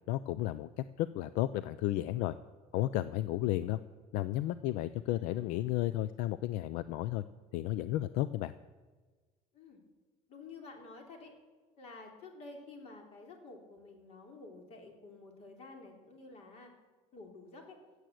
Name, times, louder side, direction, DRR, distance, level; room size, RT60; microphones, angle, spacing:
voice 1, 0.1-2.3 2.7-3.8 4.1-7.2 7.5-8.5, left 14 dB, 75° left, 15 dB, 0.5 m, -33 dB
voice 2, 4.8-5.7 9.5-9.8 10.3-11.3 11.8-16.7 17.1-17.8, left 3 dB, 50° left, 3 dB, 3.1 m, -51 dB
15.5 x 8.2 x 7.7 m, 1.3 s
cardioid pair, 155°, 14 cm